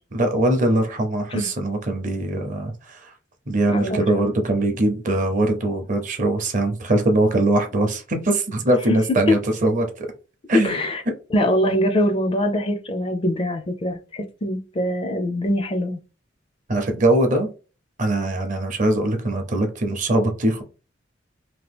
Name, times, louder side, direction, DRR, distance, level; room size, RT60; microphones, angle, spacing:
voice 1, 0.1-3.1 3.5-10.1 10.5-10.7 16.7-17.5 18.0-20.6, right 1 dB, 40° right, 0.6 m, -21 dB
voice 2, 3.7-4.0 9.3-9.4 10.5-11.0 11.3-16.0, left 1 dB, 30° left, 0.4 m, -23 dB
2.9 x 2.2 x 3.4 m
head